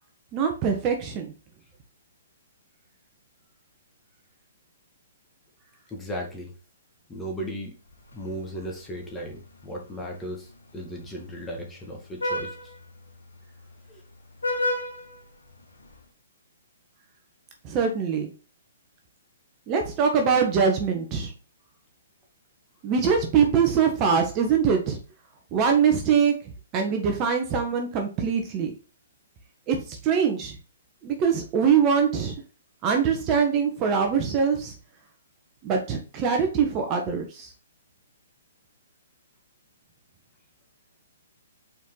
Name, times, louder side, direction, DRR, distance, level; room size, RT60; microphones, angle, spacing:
voice 1, 0.3-1.3 17.6-18.3 19.7-21.3 22.8-25.0 25.5-28.7 29.7-30.6 31.0-32.3 32.8-34.7 35.6-37.5, right 6 dB, 30° right, 3 dB, 1.2 m, -23 dB
voice 2, 5.9-6.5 7.1-7.7 8.1-12.7 13.9-14.0, equal, 10° left, -1 dB, 1.8 m, -36 dB
Vehicle horn car horn honking, 7.9-16.0, left 1 dB, 90° left, 1.8 m, -36 dB
5.6 x 4.6 x 3.9 m, 0.36 s
hypercardioid pair, 135°, 0 cm